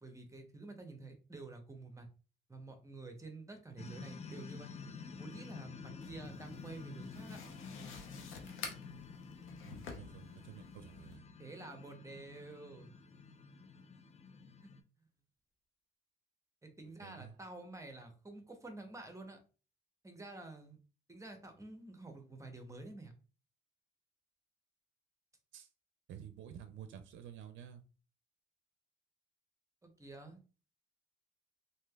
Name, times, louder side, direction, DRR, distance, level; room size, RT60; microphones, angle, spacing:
voice 1, 0.0-2.1 2.5-4.7 5.2-7.4 11.4-12.9 14.6-14.7 16.6-19.4 20.0-20.8 21.1-23.1 29.8-30.4, right 2 dB, 15° right, 5 dB, 0.7 m, -50 dB
sound 1, 3.8-14.8, left 5 dB, 35° left, 0.5 m, -50 dB
sound 2, 6.0-11.2, left 5 dB, 85° left, 0.7 m, -50 dB
voice 2, 9.6-11.2 17.0-17.3 25.5-25.7 26.1-27.8, right 9 dB, 70° right, 8 dB, 0.4 m, -51 dB
3.2 x 2.7 x 2.2 m, 0.36 s
cardioid pair, 90°, 20 cm